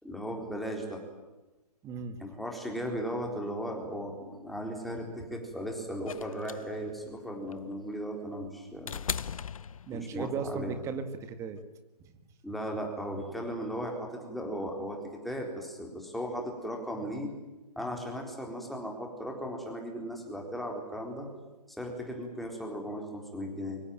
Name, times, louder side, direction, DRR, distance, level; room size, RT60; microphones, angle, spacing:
voice 1, 0.0-1.0 2.2-8.9 9.9-10.8 12.4-15.0 15.2-17.3 17.8-21.3 21.7-23.8, equal, ahead, 1 dB, 4.0 m, -36 dB
voice 2, 1.8-2.2 9.8-11.6, right 6 dB, 15° right, 10 dB, 1.7 m, -36 dB
sound 1, 6.1-10.3 11.6-11.7, left 7 dB, 60° left, 0.8 m, -39 dB
24.5 x 22.5 x 9.1 m, 1.1 s
figure-of-eight pair, 140°, 20 cm